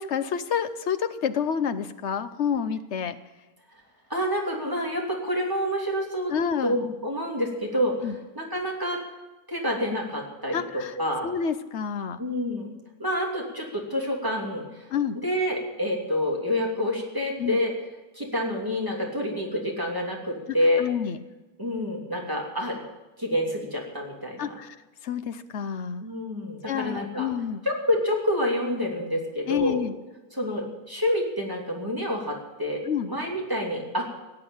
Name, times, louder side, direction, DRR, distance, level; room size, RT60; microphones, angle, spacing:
voice 1, 0.0-3.2 6.3-6.8 8.0-8.2 10.5-10.9 11.2-12.2 14.9-15.2 17.4-17.6 20.8-21.2 24.4-24.8 25.0-26.0 26.7-27.6 29.5-29.9 32.9-33.1, left 7 dB, 55° left, 11 dB, 0.9 m, -28 dB
voice 2, 4.1-6.3 6.6-9.0 9.5-11.3 12.2-12.7 13.0-14.9 15.2-17.7 18.1-20.8 21.6-22.8 23.2-24.5 26.0-27.3 27.6-29.8 30.3-32.8 33.1-34.0, left 1 dB, 15° right, -1 dB, 2.9 m, -28 dB
17.5 x 8.3 x 8.9 m, 1.1 s
omnidirectional pair, 1.6 m